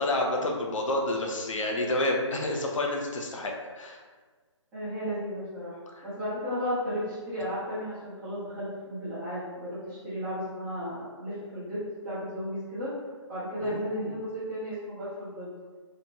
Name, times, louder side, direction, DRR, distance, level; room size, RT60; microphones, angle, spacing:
voice 1, 0.0-4.0 5.9-6.0 13.6-14.1, left 1 dB, 80° left, 1 dB, 0.6 m, -29 dB
voice 2, 4.7-12.9 13.3-15.5, equal, 10° right, -12 dB, 0.8 m, -34 dB
2.8 x 2.1 x 2.8 m, 1.5 s
hypercardioid pair, 160°, 16 cm